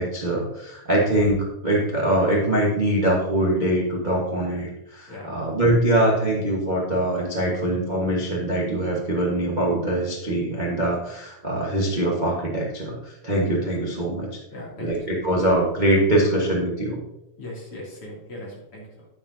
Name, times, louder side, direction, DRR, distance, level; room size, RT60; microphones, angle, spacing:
voice 1, 0.0-14.3 14.8-17.0, right 1 dB, 55° right, -3 dB, 0.5 m, -23 dB
voice 2, 14.5-15.1 17.4-19.0, left 1 dB, 50° left, -4 dB, 3.5 m, -38 dB
10.0 x 8.8 x 2.7 m, 0.87 s
omnidirectional pair, 3.5 m